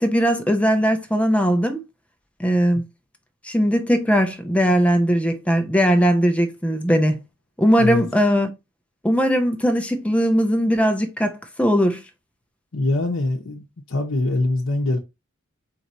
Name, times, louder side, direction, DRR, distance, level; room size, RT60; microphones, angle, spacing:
voice 1, 0.0-1.8 2.4-2.8 3.4-7.2 7.6-8.5 9.0-12.0, equal, 5° left, 0.6 m, -19 dB
voice 2, 12.7-15.0, left 2 dB, 75° left, 0.8 m, -23 dB
4.6 x 2.7 x 4.1 m
head